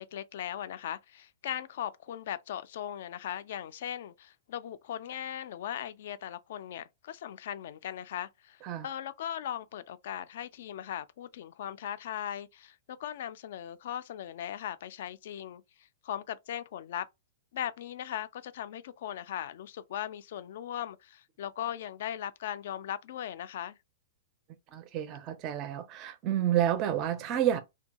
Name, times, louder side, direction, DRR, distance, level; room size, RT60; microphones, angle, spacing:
voice 1, 0.0-17.1 17.5-23.8, left 10 dB, 55° left, 0.3 m, -38 dB
voice 2, 24.7-27.6, right 11 dB, 25° right, 0.4 m, -29 dB
2.6 x 2.2 x 2.8 m
hypercardioid pair, 160°, 0 cm